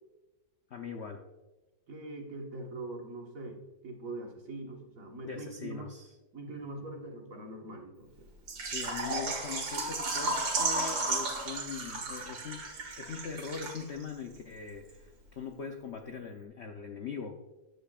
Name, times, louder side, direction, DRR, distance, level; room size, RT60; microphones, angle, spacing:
voice 1, 0.7-1.2 5.2-6.1 8.6-12.7 13.0-17.4, left 6 dB, 70° left, 4 dB, 0.6 m, -41 dB
voice 2, 1.9-5.9 6.3-8.3, right 2 dB, 45° right, 1 dB, 1.7 m, -42 dB
Water / Liquid, 8.5-14.1 14.3-14.4 14.9-15.0, right 3 dB, 65° right, 2.6 m, -33 dB
13.5 x 10.0 x 2.4 m, 1.1 s
omnidirectional pair, 2.2 m